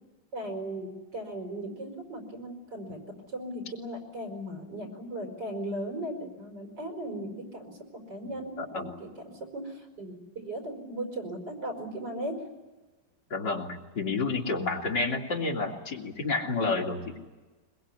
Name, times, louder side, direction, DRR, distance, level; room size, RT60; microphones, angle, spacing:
voice 1, 0.3-7.8 8.1-9.1 9.5-12.4, right 1 dB, 70° right, 3 dB, 5.6 m, -37 dB
voice 2, 8.2-8.9 13.3-17.2, left 3 dB, 70° left, 1 dB, 3.4 m, -30 dB
22.5 x 21.5 x 9.5 m, 1.2 s
omnidirectional pair, 1.9 m